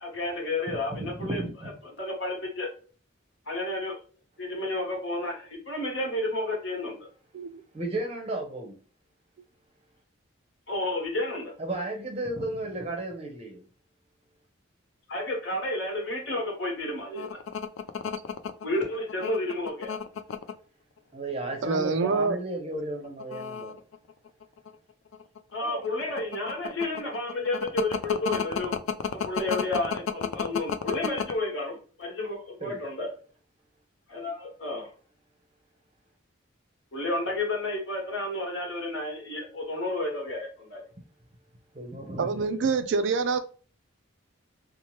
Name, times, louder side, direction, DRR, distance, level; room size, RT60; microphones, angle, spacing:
voice 1, 0.0-1.4 2.0-2.7 3.5-4.0 4.4-7.0 10.7-11.5 15.1-17.4 18.6-20.0 25.5-28.7 29.1-33.1 34.1-34.9 36.9-40.8, left 2 dB, 60° left, 1.2 m, -31 dB
voice 2, 0.9-1.7 7.7-8.8 11.6-13.6 21.1-23.8 32.6-32.8 41.7-42.5, right 2 dB, 30° right, 0.7 m, -34 dB
sound 1, 17.2-20.6 21.3-21.8 22.1-22.3 23.0-24.7 25.1-31.3, left 7 dB, 75° left, 0.3 m, -31 dB
voice 3, 21.6-22.4 25.6-25.8 42.2-43.4, right 4 dB, 60° right, 0.3 m, -26 dB
2.8 x 2.1 x 3.0 m
head